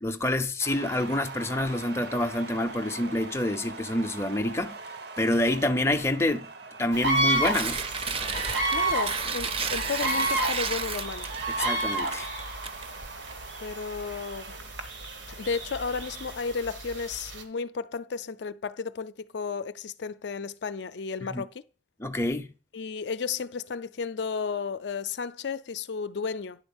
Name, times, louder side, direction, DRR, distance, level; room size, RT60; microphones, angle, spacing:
voice 1, 0.0-4.8 5.2-6.5 6.8-7.8 11.5-12.4 21.3-21.4 22.0-22.5, left 1 dB, 15° left, 0.5 m, -27 dB
sound 1, 0.6-16.4, right 3 dB, 60° right, 0.8 m, -43 dB
sound 2, 6.9-17.4, right 2 dB, 80° right, 1.5 m, -31 dB
Tearing, 7.1-13.3, right 5 dB, 30° right, 0.6 m, -33 dB
voice 2, 8.7-11.3 13.6-14.5 15.3-21.6 22.7-26.6, left 5 dB, 70° left, 0.5 m, -33 dB
10.0 x 4.3 x 7.2 m
head